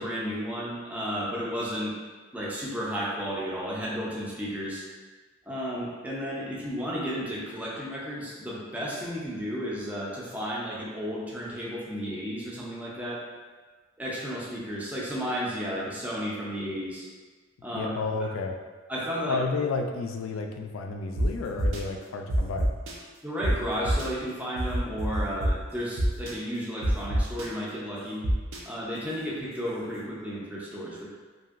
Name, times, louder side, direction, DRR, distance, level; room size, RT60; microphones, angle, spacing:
voice 1, 0.0-1.9 2.3-4.8 5.5-13.2 14.0-17.1 17.6-17.9 18.2-18.3 18.9-19.4 23.2-28.2 28.7-31.1, equal, 5° right, -6 dB, 0.5 m, -33 dB
voice 2, 17.8-18.6 19.2-22.7, left 4 dB, 75° left, 4 dB, 0.3 m, -31 dB
sound 1, 21.2-21.3 21.6-21.8 22.3-22.9 23.4-23.5 23.8-24.1 24.6-25.5 26.0-26.3 26.8-27.5 28.2-28.6, right 1 dB, 80° right, 0.5 m, -25 dB
2.9 x 2.6 x 2.4 m, 1.4 s
head